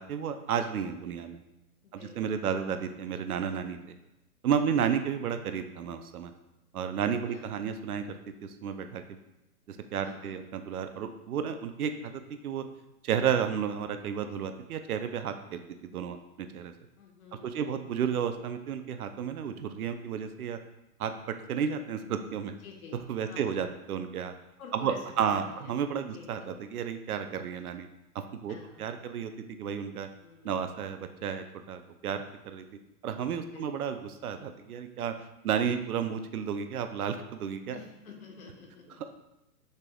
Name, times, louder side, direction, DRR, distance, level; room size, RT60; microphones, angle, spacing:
voice 1, 0.0-1.4 1.9-3.8 4.4-6.3 6.7-9.2 9.7-12.6 13.0-16.7 17.4-20.6 21.0-22.5 23.1-24.3 24.7-27.9 28.1-30.1 30.4-32.6 33.0-35.1 35.4-37.8, right 7 dB, 70° right, 8 dB, 0.6 m, -32 dB
voice 2, 1.8-2.6 4.6-5.0 7.3-7.5 10.0-10.4 17.0-18.0 22.6-23.0 23.3-23.6 24.6-25.7 26.1-26.5 28.5-29.1 30.2-30.8 33.4-34.1 37.7-39.0, left 4 dB, 65° left, 1 dB, 1.3 m, -50 dB
6.5 x 3.5 x 2.3 m, 0.92 s
hypercardioid pair, 155°, 46 cm